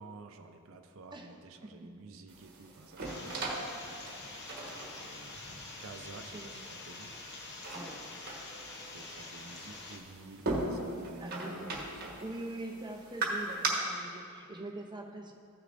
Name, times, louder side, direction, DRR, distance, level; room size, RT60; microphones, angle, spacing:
voice 1, 0.0-3.7 4.8-5.5 5.8-7.1 8.9-12.2, right 3 dB, 60° right, 6 dB, 0.6 m, -50 dB
sound 1, 2.3-13.7, right 2 dB, 45° right, 1.4 m, -40 dB
sound 2, 3.0-10.0, left 3 dB, 50° left, 0.9 m, -46 dB
voice 2, 4.2-5.1 6.3-6.6 7.7-8.0 11.2-11.8 12.2-15.3, right 1 dB, 20° right, 2 dB, 0.6 m, -44 dB
14.5 x 6.6 x 2.6 m, 2.4 s
head